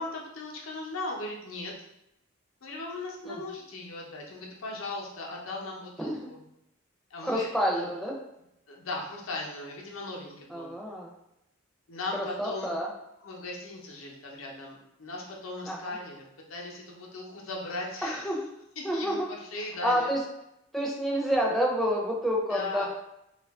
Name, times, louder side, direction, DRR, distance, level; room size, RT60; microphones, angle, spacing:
voice 1, 0.0-1.7 2.6-6.5 7.1-7.5 7.7-7.9 8.7-10.7 11.9-12.7 13.2-18.3 18.8-20.1 22.5-22.9, left 2 dB, 75° left, -1 dB, 0.7 m, -38 dB
voice 2, 6.0-6.3 7.2-8.2 10.5-11.1 12.1-12.9 15.7-16.0 18.0-18.5 18.8-19.3 19.8-20.2 20.7-22.9, equal, ahead, -3 dB, 0.5 m, -29 dB
2.8 x 2.4 x 3.5 m, 0.82 s
head